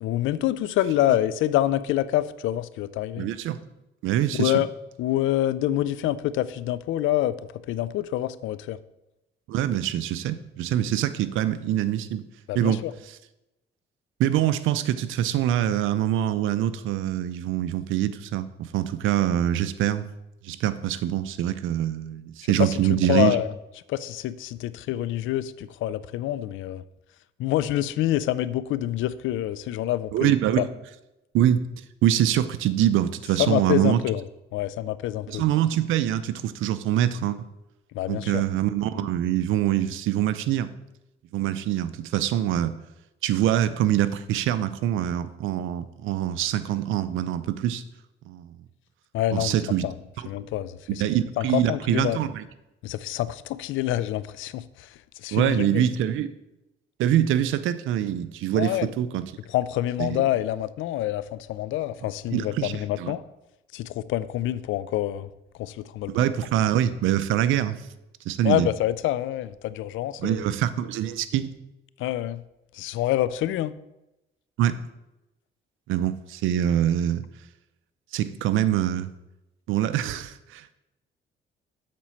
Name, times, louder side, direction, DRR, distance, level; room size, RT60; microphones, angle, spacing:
voice 1, 0.0-3.3 4.4-4.7 5.0-8.8 12.5-12.9 22.4-23.5 23.9-26.8 27.4-30.6 33.4-34.2 34.5-35.4 37.9-38.4 38.9-39.1 49.1-49.6 49.8-49.9 50.3-51.0 51.4-52.2 52.8-55.9 58.5-58.9 59.5-63.2 63.7-65.3 65.6-66.3 68.4-70.4 72.0-72.4 72.7-73.8, left 13 dB, 85° left, 16 dB, 0.4 m, -27 dB
voice 2, 3.2-3.6 4.0-4.5 9.5-12.2 12.6-12.8 14.2-20.1 20.4-23.3 30.1-30.7 31.3-31.7 32.0-34.0 35.3-37.4 38.1-40.7 41.3-42.7 43.2-47.8 48.3-48.6 49.3-49.9 51.0-52.4 55.3-56.3 57.0-59.2 60.0-60.2 62.3-62.7 63.0-63.1 66.1-67.8 68.3-68.7 70.2-71.5 74.6-74.8 75.9-77.2 78.1-79.1 79.7-80.7, right 11 dB, 85° right, 14 dB, 0.5 m, -24 dB
7.4 x 4.3 x 5.7 m, 0.93 s
cardioid pair, 90°, 20 cm